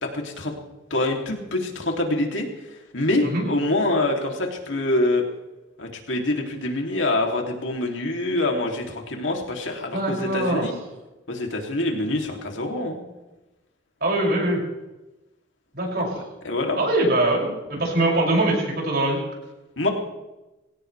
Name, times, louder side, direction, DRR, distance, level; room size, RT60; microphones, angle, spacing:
voice 1, 0.0-0.5 0.9-2.5 2.9-5.2 5.8-10.7 11.3-13.0 16.0-16.8 19.8-19.9, left 2 dB, 75° left, 1 dB, 3.1 m, -25 dB
voice 2, 9.9-10.7 14.0-14.6 15.8-16.2 16.8-19.2, right 1 dB, 55° right, -2 dB, 6.8 m, -22 dB
22.5 x 17.0 x 3.4 m, 1.0 s
head